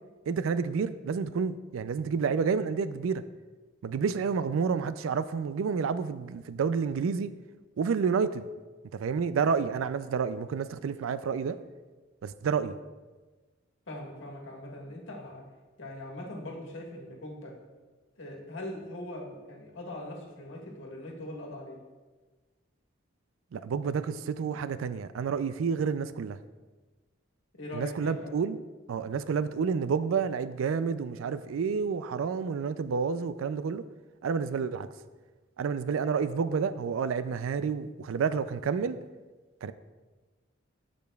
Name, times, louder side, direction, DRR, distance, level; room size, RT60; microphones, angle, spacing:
voice 1, 0.3-3.2 3.8-7.3 7.8-8.5 8.9-11.6 12.2-12.7 23.5-26.4 27.7-28.6 28.9-33.8 34.2-34.9 35.6-39.0 39.6-39.7, right 6 dB, 90° right, 14 dB, 0.4 m, -29 dB
voice 2, 13.9-15.4 15.8-17.5 18.1-21.8 27.6-28.3, left 1 dB, 70° left, -1 dB, 1.6 m, -41 dB
14.0 x 5.1 x 2.3 m, 1.3 s
head